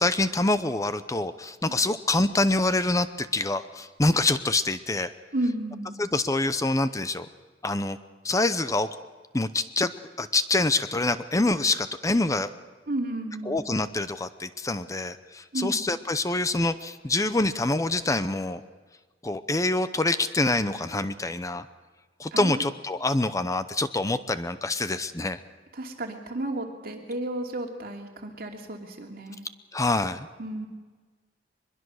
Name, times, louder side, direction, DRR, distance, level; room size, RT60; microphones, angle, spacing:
voice 1, 0.0-5.1 6.0-7.3 7.6-8.0 8.2-8.9 9.3-9.9 10.2-12.5 13.5-18.6 19.2-21.7 22.2-25.4 29.7-30.3, left 2 dB, 20° left, 12 dB, 0.7 m, -26 dB
voice 2, 5.3-6.0 12.9-13.6 15.5-15.9 22.3-22.6 25.7-29.5 30.4-30.7, right 1 dB, 55° right, 2 dB, 2.7 m, -32 dB
23.0 x 22.0 x 6.4 m, 1.4 s
head